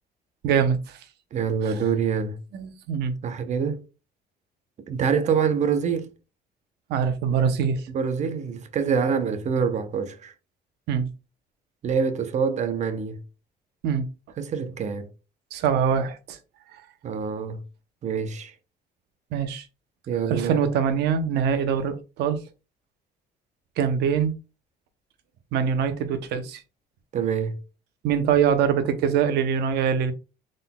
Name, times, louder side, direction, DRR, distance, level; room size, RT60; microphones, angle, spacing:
voice 1, 0.4-1.0 2.5-3.1 6.9-7.8 10.9-11.1 13.8-14.1 15.5-16.4 19.3-19.6 20.3-22.4 23.8-24.3 25.5-26.6 28.0-30.1, right 7 dB, 80° right, 0.7 m, -23 dB
voice 2, 1.3-2.4 3.2-3.8 4.9-6.1 7.9-10.3 11.8-13.2 14.4-15.1 17.0-17.6 18.0-18.5 20.1-20.6 27.1-27.6, right 6 dB, 45° right, 0.7 m, -25 dB
3.9 x 3.7 x 2.2 m
cardioid pair, 110°, 17 cm